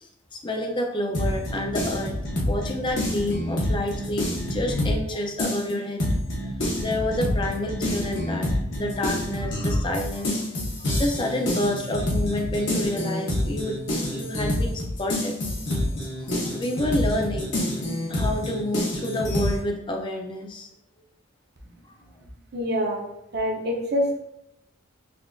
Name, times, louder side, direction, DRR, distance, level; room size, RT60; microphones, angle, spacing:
voice 1, 0.0-2.2 2.5-6.1 6.7-8.5 8.8-10.4 11.0-13.8 14.1-15.4 15.9-17.5 18.1-20.7, left 1 dB, 20° left, 2 dB, 0.4 m, -29 dB
sound 1, 1.1-5.1 5.4-19.6, left 1 dB, 55° left, 0.9 m, -27 dB
voice 2, 22.5-23.0 23.3-24.2, equal, 50° right, 0 dB, 0.7 m, -25 dB
5.7 x 2.5 x 2.3 m, 0.80 s
head